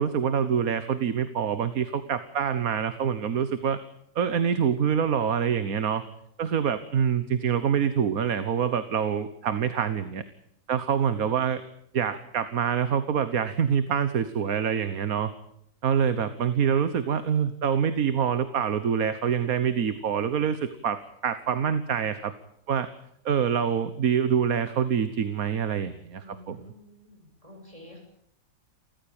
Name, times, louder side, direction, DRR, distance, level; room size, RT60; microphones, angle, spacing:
voice 1, 0.0-3.8 4.1-6.0 6.4-10.2 10.7-11.6 11.9-15.3 15.8-22.3 22.7-22.9 23.2-26.7, right 7 dB, 75° right, 12 dB, 1.6 m, -26 dB
voice 2, 26.2-28.0, left 1 dB, 20° right, 2 dB, 7.1 m, -49 dB
29.5 x 14.5 x 8.9 m, 0.74 s
omnidirectional pair, 1.5 m